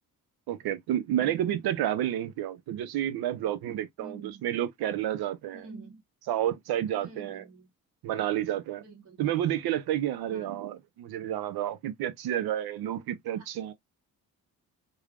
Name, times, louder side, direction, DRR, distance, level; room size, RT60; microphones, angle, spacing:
voice 1, 0.5-5.7 6.3-7.4 8.0-8.8 9.2-13.7, right 11 dB, 85° right, 0.6 m, -30 dB
voice 2, 4.0-4.5 5.5-6.0 6.9-7.7 8.8-9.6 10.3-10.5 13.3-13.5, right 4 dB, 50° right, 1.1 m, -47 dB
3.2 x 2.3 x 2.4 m
cardioid pair, 85°, 36 cm